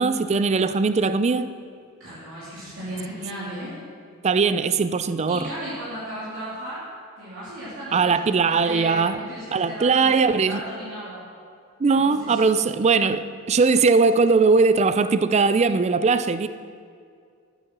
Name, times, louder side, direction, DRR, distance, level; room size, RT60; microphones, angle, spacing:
voice 1, 0.0-1.6 4.2-5.5 7.9-10.6 11.8-16.5, right 4 dB, 30° right, 0.4 m, -20 dB
voice 2, 2.0-3.8 5.3-6.9 7.2-8.2 8.5-11.2 12.0-12.4, right 1 dB, 65° right, 3.0 m, -35 dB
12.0 x 8.2 x 6.0 m
head